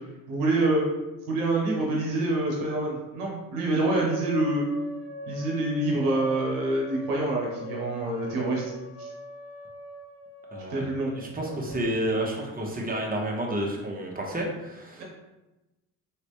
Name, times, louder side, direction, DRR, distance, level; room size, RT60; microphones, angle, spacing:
voice 1, 0.3-0.8 1.2-4.6 5.3-8.6 9.0-9.1 10.7-11.1 15.0-15.1, right 2 dB, 90° right, -2 dB, 0.9 m, -26 dB
sound 1, 3.7-12.7, left 1 dB, 70° left, 0.9 m, -42 dB
voice 2, 10.5-10.9 11.1-15.0, right 1 dB, 20° right, -1 dB, 1.0 m, -30 dB
3.2 x 3.1 x 3.0 m, 1.0 s
hypercardioid pair, 50°, 44 cm